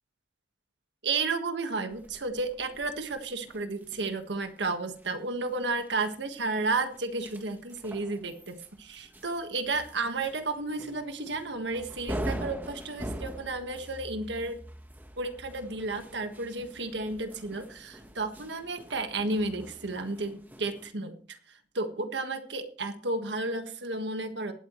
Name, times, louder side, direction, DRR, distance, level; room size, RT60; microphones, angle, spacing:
voice 1, 1.0-14.6 15.1-21.4 21.7-24.5, right 3 dB, 85° right, 7 dB, 1.5 m, -32 dB
sound 1, 1.9-20.9, equal, 10° right, 1.2 m, -44 dB
19.5 x 8.8 x 3.1 m, 0.43 s
head